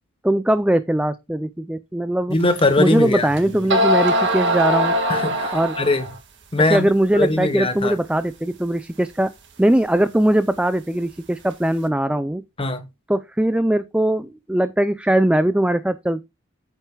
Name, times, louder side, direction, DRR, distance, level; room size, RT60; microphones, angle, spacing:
voice 1, 0.2-2.4 2.8-4.9 5.5-5.7 6.7-9.3 9.6-12.4 13.1-16.2, right 1 dB, 5° right, 0.4 m, -20 dB
voice 2, 2.3-3.7 5.1-6.1 6.5-6.8 7.1-7.9 12.6-12.8, left 2 dB, 25° left, 1.1 m, -21 dB
sound 1, 2.6-2.7 3.4-3.5 3.7-6.2, equal, 55° right, 1.8 m, -20 dB
9.1 x 8.9 x 2.3 m
head